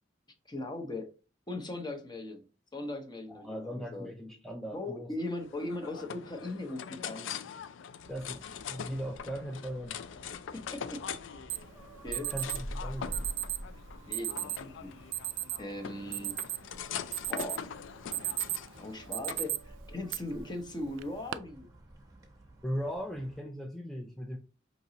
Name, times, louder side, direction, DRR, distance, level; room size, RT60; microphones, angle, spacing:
voice 1, 0.5-1.1 1.5-2.4 2.7-4.1 4.7-7.3 10.5-11.0 11.5-11.6 12.0-12.3 14.1-14.9 15.6-16.4 17.3-17.6 18.1-18.3 18.8-21.7, left 2 dB, 25° left, 0.7 m, -39 dB
voice 2, 3.3-5.1 8.1-10.0 12.2-13.3 22.6-24.4, equal, ahead, 0.4 m, -38 dB
sound 1, 5.2-19.5, left 7 dB, 85° left, 0.4 m, -43 dB
sound 2, 8.0-23.4, equal, 20° right, 0.8 m, -48 dB
Alarm, 11.5-11.6 12.1-12.6 13.1-13.6 14.1-14.6 15.1-15.6 16.0-16.7 17.1-17.6 18.0-18.7 19.1-19.6 20.1-20.2 21.0-21.3, right 15 dB, 85° right, 0.3 m, -34 dB
5.2 x 2.9 x 2.7 m
head